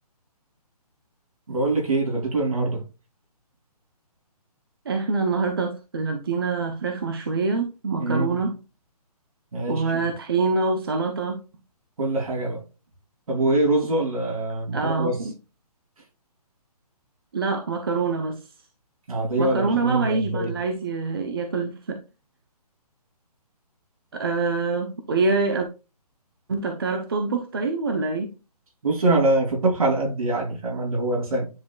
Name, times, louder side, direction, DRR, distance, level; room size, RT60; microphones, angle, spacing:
voice 1, 1.5-2.8 8.0-8.4 9.5-10.1 12.0-12.6 13.3-15.2 19.1-20.5 28.8-31.5, right 2 dB, 60° right, 3.2 m, -24 dB
voice 2, 4.9-8.6 9.7-11.4 14.7-15.3 17.3-18.5 19.4-22.0 24.1-25.7 26.5-28.3, right 4 dB, 35° right, 0.7 m, -25 dB
9.8 x 4.8 x 2.3 m
hypercardioid pair, 175°, 20 cm